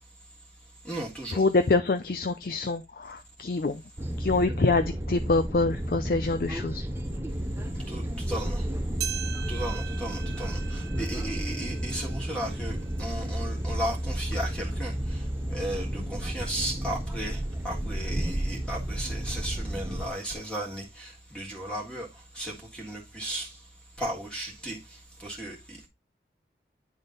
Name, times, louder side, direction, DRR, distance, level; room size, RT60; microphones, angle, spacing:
voice 1, 0.8-1.5 7.7-8.7 9.5-22.1 22.3-23.6 24.0-25.9, right 1 dB, 5° left, 1.8 m, -35 dB
voice 2, 1.4-3.8 4.2-6.8, left 3 dB, 55° left, 0.5 m, -25 dB
sound 1, 4.0-20.1, right 1 dB, 15° right, 0.7 m, -32 dB
sound 2, 9.0-13.6 14.1-14.2 15.0-15.1 16.1-16.2, right 10 dB, 65° right, 1.0 m, -41 dB
9.9 x 3.7 x 3.8 m
head